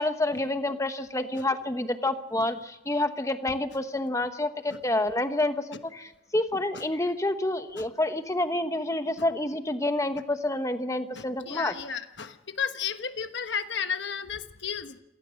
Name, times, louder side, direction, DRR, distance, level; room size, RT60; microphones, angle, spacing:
voice 1, 0.0-5.6 5.8-11.7, left 2 dB, 15° left, 9 dB, 1.1 m, -28 dB
voice 2, 11.1-15.0, left 7 dB, 60° left, 9 dB, 1.2 m, -33 dB
28.5 x 17.5 x 6.5 m, 0.93 s
head